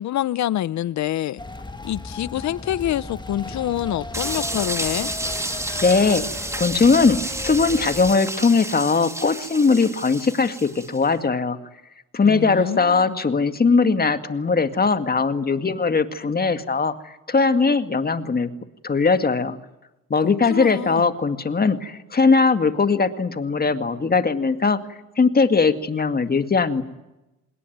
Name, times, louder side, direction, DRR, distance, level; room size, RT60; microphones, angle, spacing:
voice 1, 0.0-1.4 1.8-5.1 12.2-13.2 20.2-21.1, left 12 dB, 70° left, 0.9 m, -26 dB
sound 1, 1.4-8.2, left 2 dB, 15° left, 2.0 m, -35 dB
sound 2, 4.1-11.0, right 1 dB, 10° right, 2.4 m, -30 dB
voice 2, 5.8-6.3 6.6-11.6 12.1-18.5 18.8-19.6 20.1-24.8 25.2-26.8, left 4 dB, 30° left, 2.1 m, -20 dB
26.5 x 21.0 x 9.5 m
cardioid pair, 90°, 30 cm